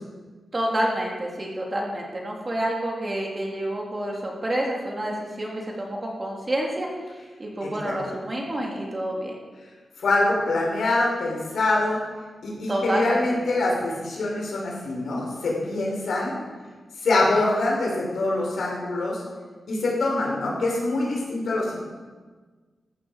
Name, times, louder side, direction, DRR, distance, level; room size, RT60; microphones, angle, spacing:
voice 1, 0.5-9.4 12.7-13.2, right 1 dB, 30° right, -1 dB, 3.2 m, -28 dB
voice 2, 10.0-12.0 12.4-16.4 17.0-19.2 19.7-21.8, left 2 dB, 80° left, -3 dB, 5.4 m, -24 dB
15.5 x 12.0 x 5.1 m, 1.4 s
wide cardioid pair, 115°, 0 cm